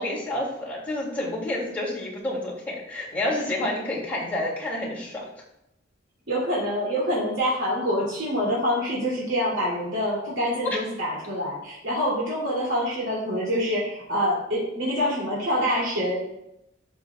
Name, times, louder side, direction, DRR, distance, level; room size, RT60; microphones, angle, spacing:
voice 1, 0.0-5.2 10.6-10.8, left 1 dB, 10° left, -6 dB, 2.9 m, -29 dB
voice 2, 6.3-16.2, equal, 80° right, -6 dB, 3.0 m, -26 dB
12.0 x 6.3 x 2.4 m, 0.84 s
head